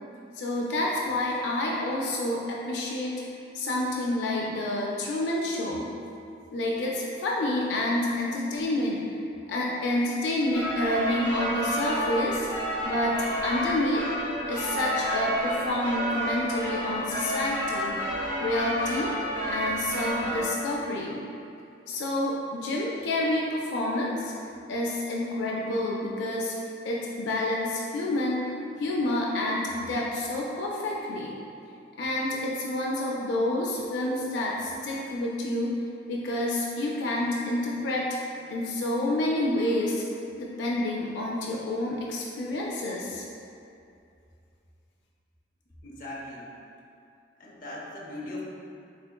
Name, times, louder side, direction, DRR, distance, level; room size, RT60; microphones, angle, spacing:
voice 1, 0.3-3.2 3.5-5.9 6.5-9.2 9.5-12.5 12.8-14.0 14.5-18.0 18.4-19.1 19.5-21.2 21.9-24.3 24.7-26.5 26.8-28.4 28.8-31.4 32.0-35.7 36.1-38.1 38.5-40.0 40.3-43.3, left 1 dB, 85° left, -3 dB, 0.4 m, -28 dB
sound 1, 10.5-20.4, equal, 15° left, 1.0 m, -30 dB
voice 2, 45.8-46.5 47.4-48.4, left 1 dB, 50° left, -5 dB, 0.6 m, -39 dB
3.6 x 3.3 x 2.2 m, 2.5 s
head